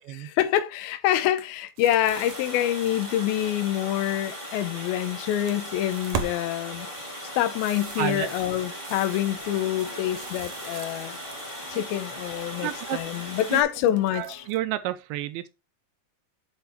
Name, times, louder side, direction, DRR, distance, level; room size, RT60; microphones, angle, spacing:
voice 1, 0.0-6.9 7.4-11.2 11.7-14.4, left 12 dB, 75° left, 2.5 m, -26 dB
sound 1, 1.8-4.6 5.0-6.4 6.7-11.7 12.0-12.6 13.2-14.6, right 7 dB, 65° right, 2.0 m, -40 dB
Water, 2.1-13.6, equal, 10° left, 1.5 m, -38 dB
voice 2, 8.0-8.3 11.7-11.8 12.6-13.0 13.5-13.6 14.1-15.5, right 14 dB, 80° right, 2.2 m, -30 dB
sound 2, 9.0-14.5, left 4 dB, 50° left, 1.4 m, -50 dB
8.6 x 4.4 x 4.5 m
omnidirectional pair, 4.5 m